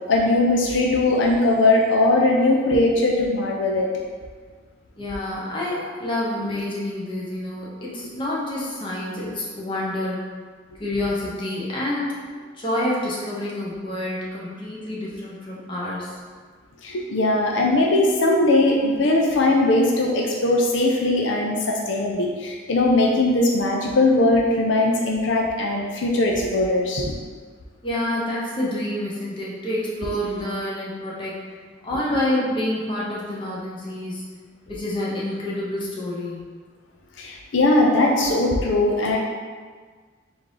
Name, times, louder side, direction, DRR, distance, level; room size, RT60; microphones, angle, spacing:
voice 1, 0.1-3.9 9.2-9.3 16.8-27.1 37.2-39.2, left 2 dB, 80° left, 0 dB, 0.5 m, -20 dB
voice 2, 5.0-10.2 10.8-12.2 12.6-16.2 27.8-31.5 31.8-34.2 34.7-36.5, left 1 dB, 25° left, -6 dB, 0.9 m, -28 dB
3.7 x 2.6 x 4.7 m, 1.6 s
head